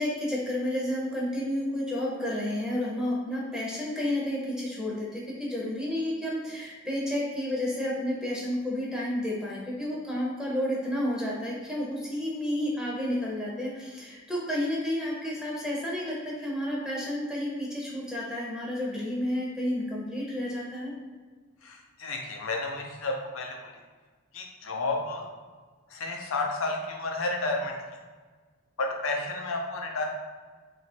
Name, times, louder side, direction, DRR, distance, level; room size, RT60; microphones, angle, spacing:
voice 1, 0.0-20.9, left 1 dB, 5° right, -5 dB, 0.7 m, -31 dB
voice 2, 21.6-23.7 24.3-25.2 25.9-27.8 28.8-30.1, left 2 dB, 85° left, 1 dB, 0.6 m, -31 dB
3.0 x 2.4 x 4.3 m, 1.4 s
head